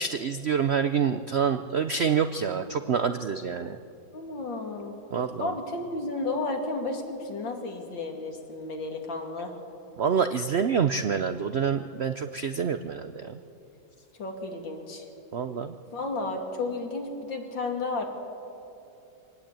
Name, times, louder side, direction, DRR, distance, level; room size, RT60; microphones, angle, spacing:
voice 1, 0.0-3.8 5.1-5.5 10.0-13.4 15.3-15.8, right 6 dB, 70° right, 9 dB, 0.6 m, -27 dB
voice 2, 4.1-5.0 5.4-9.5 14.2-15.0 15.9-18.1, left 3 dB, 85° left, 2 dB, 3.2 m, -32 dB
24.0 x 18.5 x 8.9 m, 2.8 s
omnidirectional pair, 2.0 m